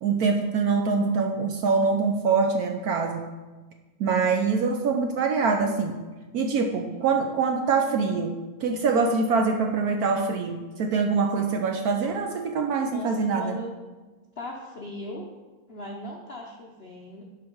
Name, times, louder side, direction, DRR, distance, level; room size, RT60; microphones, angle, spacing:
voice 1, 0.0-3.2 4.0-6.0 6.3-13.6, right 4 dB, 80° right, 4 dB, 0.8 m, -24 dB
voice 2, 12.9-13.7 14.4-15.3 15.7-17.2, left 1 dB, 90° left, -1 dB, 0.5 m, -38 dB
11.5 x 4.8 x 4.5 m, 1.2 s
omnidirectional pair, 2.3 m